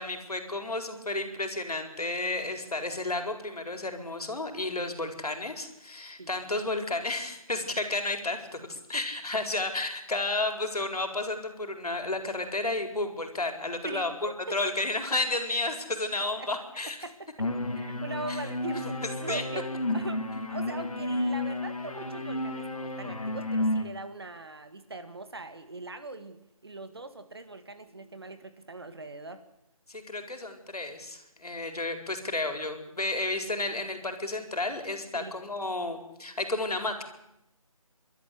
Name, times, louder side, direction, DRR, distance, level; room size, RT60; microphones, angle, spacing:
voice 1, 0.0-17.0 18.3-18.4 19.3-19.4 29.9-37.0, left 2 dB, 85° left, 6 dB, 4.6 m, -32 dB
voice 2, 13.8-14.6 16.4-16.5 17.0-17.3 17.8-29.4 35.1-35.3, right 2 dB, 45° right, 10 dB, 2.0 m, -41 dB
sound 1, 17.4-23.8, left 1 dB, 70° left, 3.0 m, -31 dB
29.0 x 13.0 x 8.5 m, 0.84 s
figure-of-eight pair, 180°, 19 cm